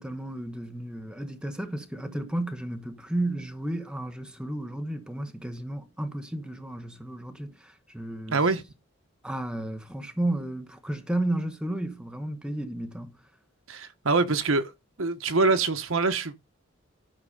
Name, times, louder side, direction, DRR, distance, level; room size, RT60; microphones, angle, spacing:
voice 1, 0.0-8.4 9.2-13.2, right 1 dB, 5° right, 1.2 m, -33 dB
voice 2, 8.3-8.6 13.7-14.7 15.0-16.4, right 3 dB, 75° right, 1.1 m, -24 dB
11.5 x 6.1 x 5.4 m
head